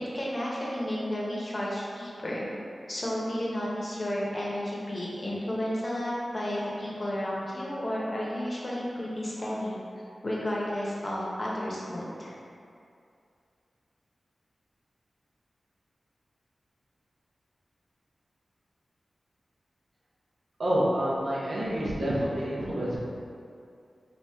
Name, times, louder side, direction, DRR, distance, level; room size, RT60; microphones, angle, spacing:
voice 1, 0.1-2.5 2.9-9.8 10.2-12.3, left 1 dB, 35° left, -5 dB, 0.8 m, -32 dB
voice 2, 20.6-23.0, equal, 75° right, -7 dB, 0.9 m, -28 dB
2.9 x 2.6 x 3.4 m, 2.4 s
wide cardioid pair, 65°, 0 cm